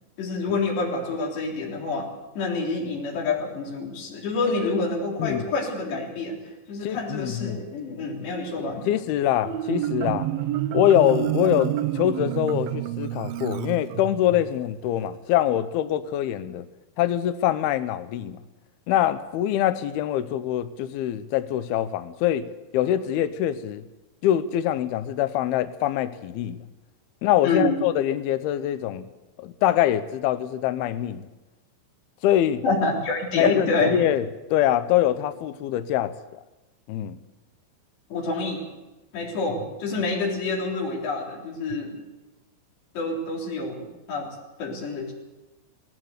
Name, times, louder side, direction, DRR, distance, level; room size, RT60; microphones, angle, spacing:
voice 1, 0.2-2.1 2.4-6.4 6.7-8.8 27.4-27.8 32.6-34.0 38.1-38.6 39.1-41.9 43.0-44.3 44.6-45.1, left 3 dB, 65° left, 5.6 m, -27 dB
voice 2, 6.8-7.6 8.9-10.3 10.7-16.7 17.0-18.4 18.9-22.5 22.7-23.8 24.2-26.6 27.2-29.0 29.4-31.3 32.2-32.6 33.4-36.4 36.9-37.2, left 12 dB, 85° left, 2.2 m, -24 dB
Marimba xylophone, 9.3-14.4, right 13 dB, 80° right, 2.1 m, -29 dB
19.5 x 17.0 x 8.1 m
omnidirectional pair, 5.5 m